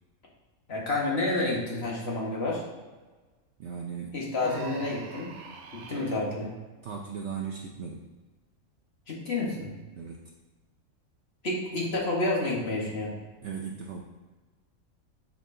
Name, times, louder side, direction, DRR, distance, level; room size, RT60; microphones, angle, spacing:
voice 1, 0.7-2.6 4.1-5.3 5.7-6.5 9.1-9.7 11.4-13.1, left 2 dB, 50° left, -3 dB, 1.6 m, -29 dB
voice 2, 3.6-4.2 6.8-8.1 9.9-10.3 13.4-14.0, right 6 dB, 65° right, 0 dB, 0.8 m, -37 dB
Human voice, 4.4-6.3, right 4 dB, 85° right, 1.2 m, -42 dB
6.9 x 6.0 x 2.7 m, 1.3 s
omnidirectional pair, 1.4 m